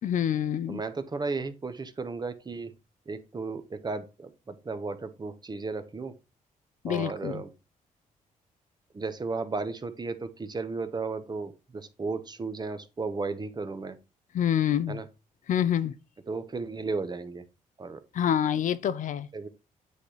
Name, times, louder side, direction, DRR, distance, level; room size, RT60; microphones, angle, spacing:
voice 1, 0.0-0.8 6.8-7.4 14.3-15.0 15.5-15.9 18.1-19.3, left 9 dB, 65° left, 0.5 m, -27 dB
voice 2, 0.7-2.7 3.1-6.1 6.9-7.5 8.9-14.0 14.9-15.1 16.3-17.4 17.8-18.0 19.3-19.5, right 3 dB, 30° right, 0.9 m, -34 dB
8.3 x 3.3 x 4.2 m
cardioid pair, 85°, 14 cm